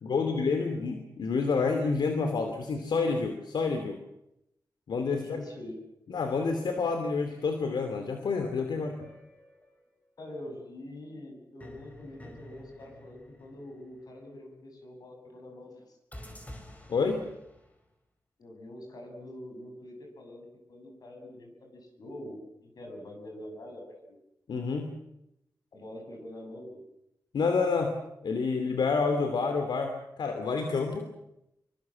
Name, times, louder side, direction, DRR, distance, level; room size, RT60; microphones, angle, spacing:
voice 1, 0.0-4.0 4.9-5.4 6.1-9.1 16.9-17.2 24.5-24.9 27.3-27.9 28.2-31.1, left 4 dB, 80° left, 6 dB, 2.7 m, -28 dB
voice 2, 5.1-5.7 10.2-16.0 18.4-24.2 25.7-26.8, left 1 dB, 60° left, 3 dB, 7.9 m, -45 dB
sound 1, 9.0-10.1 11.6-14.3 16.1-17.8, left 1 dB, 20° left, 4.6 m, -50 dB
26.0 x 24.0 x 7.6 m, 0.85 s
wide cardioid pair, 150°, 8 cm